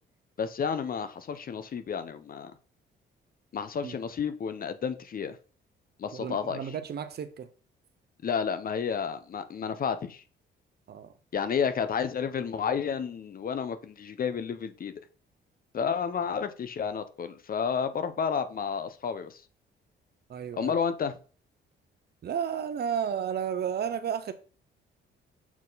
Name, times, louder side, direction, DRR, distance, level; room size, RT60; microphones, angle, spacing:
voice 1, 0.4-2.5 3.5-5.4 6.0-6.6 8.2-10.2 11.3-14.9 15.7-19.4 20.5-21.1, left 6 dB, 45° left, 0.9 m, -31 dB
voice 2, 6.1-7.5 10.9-11.1 20.3-20.7 22.2-24.3, right 8 dB, 55° right, 0.8 m, -32 dB
7.2 x 4.2 x 4.1 m
cardioid pair, 90°, 20 cm